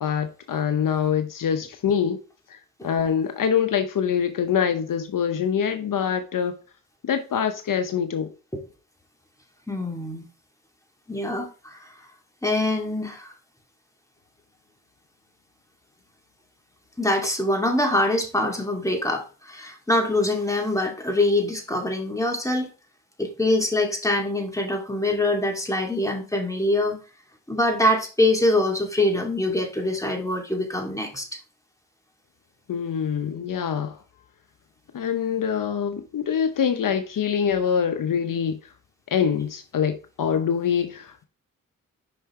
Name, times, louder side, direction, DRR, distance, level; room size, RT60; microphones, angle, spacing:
voice 1, 0.0-2.2 2.5-2.6 2.8-6.5 7.0-8.3 32.7-34.0 34.9-38.6 39.1-41.2, left 7 dB, 70° left, 0.8 m, -24 dB
voice 2, 9.7-10.3 11.1-11.9 12.4-13.3 17.0-22.7 23.2-27.0 27.5-31.3, left 1 dB, 10° left, 2.3 m, -24 dB
5.6 x 5.4 x 3.6 m
cardioid pair, 50°, 34 cm